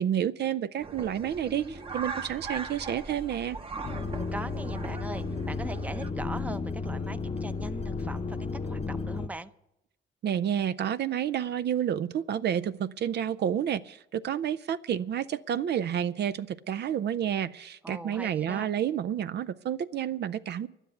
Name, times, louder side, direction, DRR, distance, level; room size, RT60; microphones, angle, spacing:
voice 1, 0.0-3.6 10.2-20.7, right 9 dB, 60° right, 12 dB, 0.5 m, -30 dB
sound 1, 0.8-6.1, right 4 dB, 30° right, 1.0 m, -39 dB
sound 2, 3.8-9.3, left 4 dB, 30° left, 0.9 m, -33 dB
voice 2, 4.3-8.4 8.6-9.5 17.8-18.7, right 1 dB, 5° right, 10 dB, 0.7 m, -40 dB
11.5 x 10.0 x 8.2 m, 0.88 s
cardioid pair, 90°, 20 cm